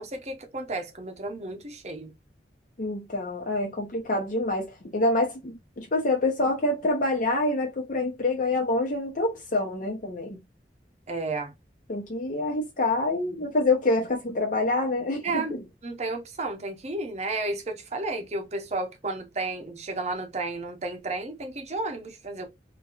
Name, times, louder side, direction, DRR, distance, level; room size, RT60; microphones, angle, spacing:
voice 1, 0.0-2.1 11.1-11.5 15.2-15.6 15.8-22.5, right 2 dB, 40° right, 0.8 m, -32 dB
voice 2, 2.8-10.4 11.9-15.6, left 2 dB, 45° left, 0.8 m, -26 dB
3.0 x 2.7 x 2.4 m
head